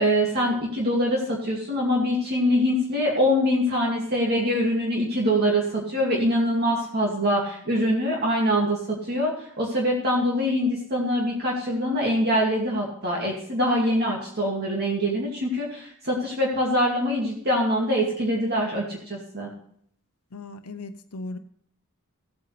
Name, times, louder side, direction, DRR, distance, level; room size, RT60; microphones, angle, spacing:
voice 1, 0.0-8.8 9.1-19.5, equal, 45° right, -2 dB, 2.4 m, -24 dB
voice 2, 20.3-21.4, left 2 dB, 90° left, 7 dB, 0.8 m, -37 dB
16.0 x 8.5 x 3.4 m, 0.65 s
head